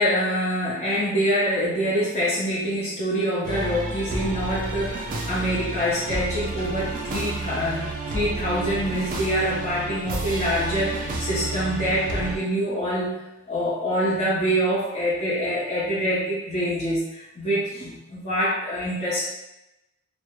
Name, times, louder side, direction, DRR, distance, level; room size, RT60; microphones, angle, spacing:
voice 1, 0.0-13.1 13.5-19.3, equal, 30° left, -8 dB, 0.6 m, -25 dB
sound 1, 3.4-12.4, right 2 dB, 35° right, 0.4 m, -31 dB
2.3 x 2.0 x 2.9 m, 0.92 s
head